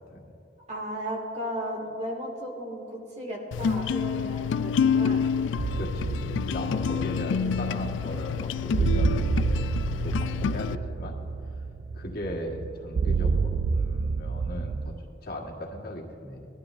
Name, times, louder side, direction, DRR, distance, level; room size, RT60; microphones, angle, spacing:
voice 1, 0.7-5.3 7.2-7.9, equal, 40° right, -2 dB, 2.2 m, -35 dB
sound 1, 3.5-10.7, left 7 dB, 80° left, 0.3 m, -28 dB
sound 2, 5.6-15.0, right 5 dB, 55° right, 0.3 m, -29 dB
voice 2, 5.7-9.7 10.0-11.2 11.9-14.9 15.2-16.5, left 1 dB, 55° left, -1 dB, 1.5 m, -37 dB
19.0 x 12.0 x 2.6 m, 2.8 s
head